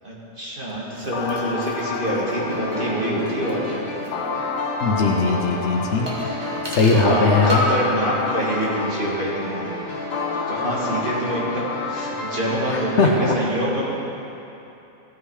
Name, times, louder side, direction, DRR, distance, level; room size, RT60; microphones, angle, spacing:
voice 1, 0.0-3.8 6.2-6.6 6.8-9.7 10.0-13.9, right 1 dB, 40° right, -6 dB, 2.1 m, -26 dB
sound 1, 0.9-4.3 4.5-4.6 6.1-7.2 7.5-7.9 8.2-8.8 9.0-9.1, equal, 20° right, 1.4 m, -32 dB
sound 2, 1.1-13.1, left 5 dB, 80° left, 1.2 m, -31 dB
sound 3, 2.0-13.1, left 1 dB, 30° left, 1.4 m, -32 dB
voice 2, 4.8-6.2 6.7-7.6 12.7-13.3, left 4 dB, 60° left, 1 dB, 1.0 m, -19 dB
15.5 x 6.0 x 4.8 m, 2.9 s
omnidirectional pair, 1.4 m